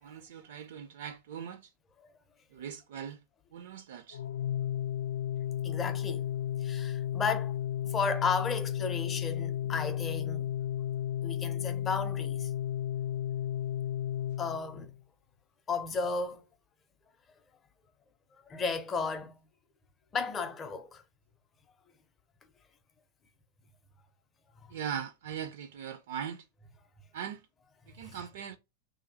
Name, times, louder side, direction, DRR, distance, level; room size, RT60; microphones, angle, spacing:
voice 1, 0.0-1.7 2.5-3.2 3.5-4.2 24.7-26.5 27.1-27.4 27.9-28.6, right 8 dB, 65° right, 0.4 m, -40 dB
Organ, 4.1-15.0, left 11 dB, 80° left, 0.3 m, -33 dB
voice 2, 5.6-6.3 6.6-7.6 7.8-10.5 11.2-12.5 14.4-14.9 15.7-16.4 18.3-19.4 20.1-21.0 28.0-28.2, left 4 dB, 15° left, 0.5 m, -34 dB
3.1 x 2.6 x 3.9 m
supercardioid pair, 175°, 0 cm